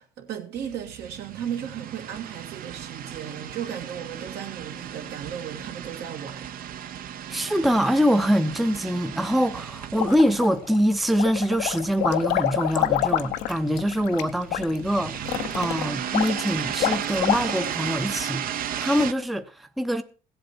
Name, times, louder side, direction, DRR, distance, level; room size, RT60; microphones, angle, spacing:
voice 1, 0.0-6.5, right 9 dB, 75° right, 2.3 m, -35 dB
sound 1, 0.5-19.1, right 10 dB, 60° right, 0.7 m, -35 dB
voice 2, 7.3-20.0, equal, ahead, 0.6 m, -24 dB
sound 2, 9.9-10.8 11.1-17.8, left 13 dB, 85° left, 0.8 m, -27 dB
16.0 x 7.9 x 4.4 m
cardioid pair, 110°, 17 cm